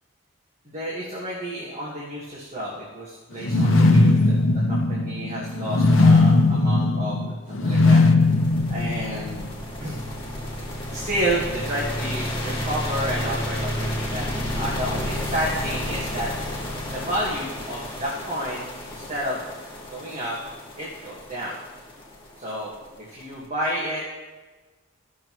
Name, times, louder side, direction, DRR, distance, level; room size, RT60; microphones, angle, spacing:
voice 1, 0.6-4.4 4.7-8.3 8.7-9.5 9.8-10.0 10.9-14.3 14.5-16.3 16.9-19.4 19.8-20.4 20.8-21.6 22.4-22.7 23.1-24.0, equal, 35° right, -6 dB, 1.6 m, -30 dB
sound 1, 3.4-9.5, left 2 dB, 65° left, 0.8 m, -18 dB
sound 2, 8.2-23.3, left 1 dB, 25° left, 1.8 m, -31 dB
15.5 x 6.4 x 3.1 m, 1.3 s
head